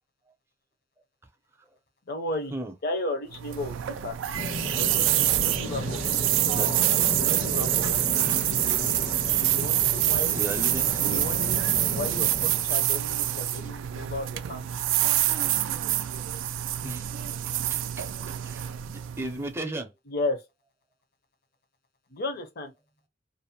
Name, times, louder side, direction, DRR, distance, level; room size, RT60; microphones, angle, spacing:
voice 1, 2.1-2.5 2.8-4.2 4.7-6.2 7.1-8.1 9.2-10.4 11.0-11.7 11.9-14.8 20.1-20.4 22.1-22.7, left 2 dB, 55° left, 0.7 m, -34 dB
sound 1, 3.3-19.5, right 13 dB, 85° right, 0.3 m, -26 dB
Bird vocalization bird call bird song, 4.3-12.7, left 1 dB, 80° left, 1.5 m, -34 dB
voice 2, 6.4-6.9 10.3-11.2 16.8-19.9, right 1 dB, 15° right, 0.5 m, -37 dB
2.6 x 2.1 x 2.7 m
head